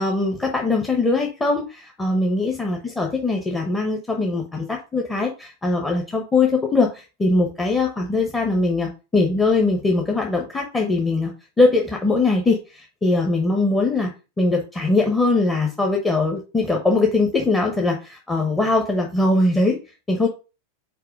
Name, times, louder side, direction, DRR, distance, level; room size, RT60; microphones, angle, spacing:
voice 1, 0.0-11.3 11.6-19.8 20.1-20.3, left 3 dB, 10° left, 0 dB, 0.9 m, -21 dB
4.6 x 4.4 x 4.8 m, 0.31 s
figure-of-eight pair, 90°, 0 cm